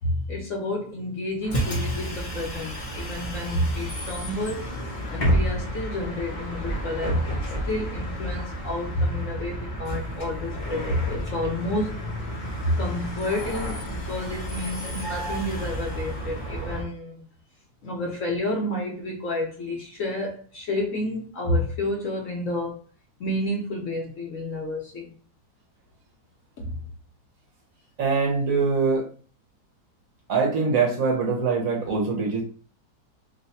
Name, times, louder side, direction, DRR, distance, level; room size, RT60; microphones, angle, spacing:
voice 1, 0.0-4.7 5.1-7.3 7.7-12.0 12.6-17.2 17.8-22.8 23.2-25.1 26.6-26.8, left 1 dB, 55° left, -1 dB, 1.1 m, -29 dB
Bus, 1.4-16.8, right 1 dB, 35° left, 0.8 m, -32 dB
voice 2, 28.0-29.1 30.3-32.4, right 4 dB, 60° right, -2 dB, 1.1 m, -23 dB
3.1 x 2.3 x 4.1 m, 0.41 s
omnidirectional pair, 1.8 m